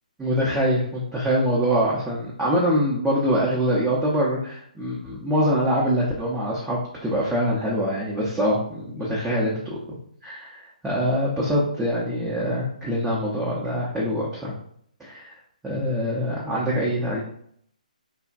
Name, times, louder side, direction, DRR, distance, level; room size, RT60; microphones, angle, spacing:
voice 1, 0.2-9.8 10.2-14.5 15.0-15.3 15.6-17.2, equal, 5° right, -7 dB, 0.5 m, -24 dB
3.3 x 2.1 x 2.5 m, 0.65 s
figure-of-eight pair, 140°, 4 cm